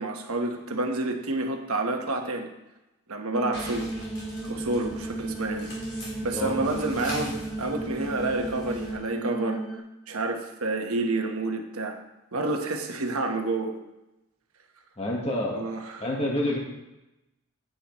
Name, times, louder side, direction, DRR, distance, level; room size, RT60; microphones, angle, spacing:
voice 1, 0.0-2.5 3.1-3.9 4.4-5.7 6.2-9.6 10.1-12.0 12.3-13.7 15.5-16.0, right 2 dB, 90° right, 4 dB, 1.1 m, -29 dB
sound 1, 3.3-9.8, right 2 dB, ahead, 0.8 m, -35 dB
sound 2, 3.5-8.9, equal, 50° left, 3.7 m, -42 dB
voice 2, 15.0-15.6 16.0-16.6, left 1 dB, 30° left, -1 dB, 1.4 m, -27 dB
10.0 x 9.1 x 3.1 m, 0.96 s
head